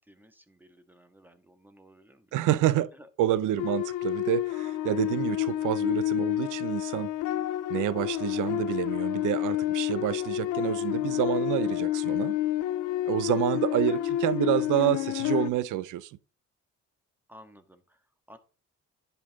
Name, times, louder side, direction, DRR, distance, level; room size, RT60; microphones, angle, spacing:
voice 1, 0.0-2.6 2.9-3.1 17.3-18.4, equal, 5° right, 1.6 m, -55 dB
voice 2, 2.3-2.9 3.2-7.1 7.7-12.4 13.1-16.2, right 13 dB, 85° right, 0.7 m, -28 dB
sound 1, 3.6-15.5, left 13 dB, 85° left, 0.6 m, -29 dB
10.0 x 5.6 x 3.7 m
cardioid pair, 90°, 30 cm